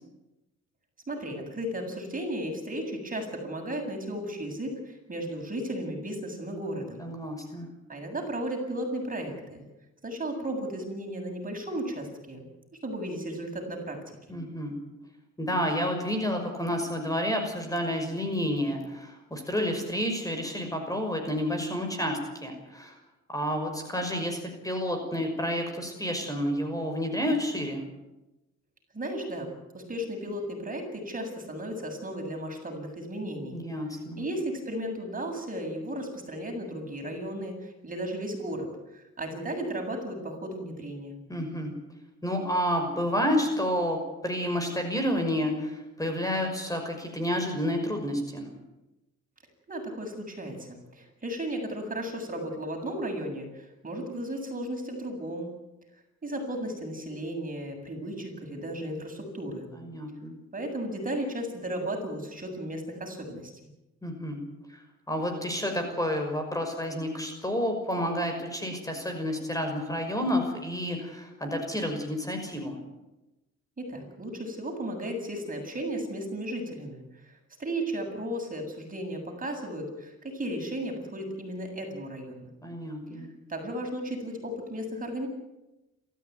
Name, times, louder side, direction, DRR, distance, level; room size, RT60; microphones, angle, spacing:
voice 1, 1.1-7.0 7.9-9.7 10.0-12.5 12.8-14.4 28.9-33.6 34.2-41.2 49.7-55.5 56.2-59.7 60.5-63.5 73.8-82.5 83.5-85.3, right 1 dB, 25° right, 3 dB, 7.9 m, -35 dB
voice 2, 7.0-7.7 14.3-14.7 15.4-22.9 23.3-27.8 33.5-34.2 41.3-41.7 42.2-48.5 59.7-60.4 64.0-64.4 65.1-72.8 82.6-83.3, equal, 10° left, 4 dB, 5.9 m, -30 dB
28.5 x 14.5 x 9.7 m, 1.0 s
cardioid pair, 90°, 30 cm